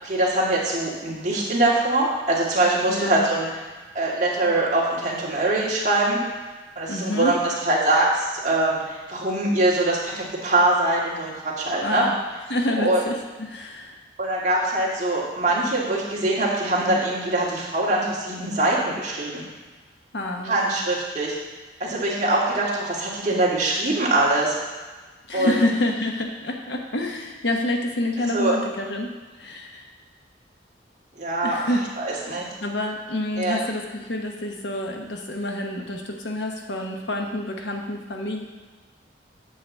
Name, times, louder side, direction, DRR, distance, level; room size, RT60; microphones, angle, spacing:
voice 1, 0.0-3.5 3.9-6.2 6.8-12.0 12.8-13.0 14.2-19.4 20.4-21.4 21.8-24.6 25.3-25.5 28.3-28.5 31.2-31.6 32.0-32.5 33.4-33.6, right 2 dB, 40° right, -5 dB, 1.9 m, -23 dB
voice 2, 2.9-3.3 6.9-7.4 11.8-12.1 12.5-14.0 20.1-20.8 25.3-29.1 29.4-29.8 31.4-31.9 32.2-38.4, left 1 dB, 75° left, 2 dB, 1.1 m, -28 dB
8.5 x 4.0 x 7.1 m, 1.3 s
head